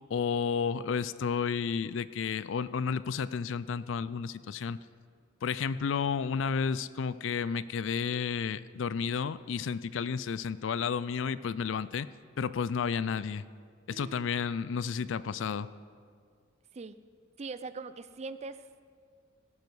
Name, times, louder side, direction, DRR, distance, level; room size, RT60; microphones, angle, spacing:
voice 1, 0.1-4.8 5.4-12.1 12.4-13.4 13.9-15.7, left 6 dB, 70° left, 17 dB, 0.4 m, -32 dB
voice 2, 13.9-14.3 16.7-17.0 17.4-18.7, right 4 dB, 35° right, 14 dB, 0.4 m, -41 dB
17.5 x 9.2 x 4.8 m, 2.1 s
head